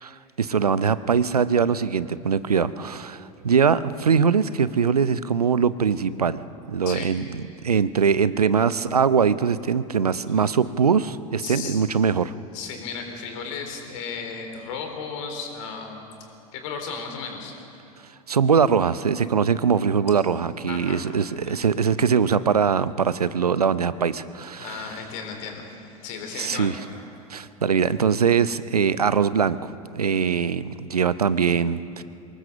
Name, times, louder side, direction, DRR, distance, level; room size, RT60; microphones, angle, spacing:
voice 1, 0.0-6.4 6.7-7.2 7.6-12.3 18.3-24.8 26.4-26.7 27.3-32.0, right 6 dB, 85° right, 16 dB, 0.6 m, -22 dB
voice 2, 11.4-11.8 12.5-17.6 20.7-21.1 21.4-21.7 24.6-26.7, left 5 dB, 60° left, 4 dB, 3.9 m, -35 dB
23.5 x 19.5 x 6.9 m, 2.7 s
figure-of-eight pair, 80°, 19 cm